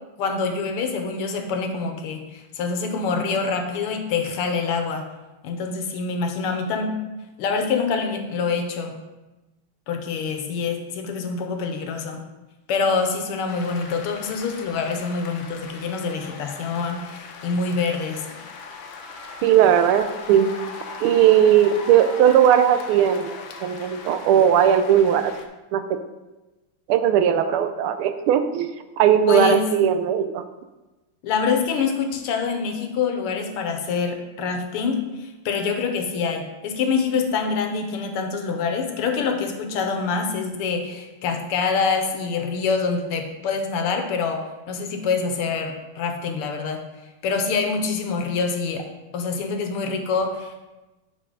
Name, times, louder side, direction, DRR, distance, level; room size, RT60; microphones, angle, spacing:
voice 1, 0.2-5.0 5.4-7.0 7.4-9.0 9.9-12.2 12.7-18.2 29.3-29.7 31.2-46.8 47.2-48.9 49.1-50.7, left 5 dB, 90° left, 5 dB, 1.9 m, -25 dB
sound 1, 13.5-25.5, left 4 dB, 70° left, 1.4 m, -39 dB
voice 2, 19.4-20.5 21.0-23.3 23.6-25.3 25.7-25.8 26.9-28.7 29.0-30.4, right 9 dB, 80° right, 9 dB, 1.5 m, -18 dB
10.0 x 5.5 x 3.8 m, 1.1 s
omnidirectional pair, 2.4 m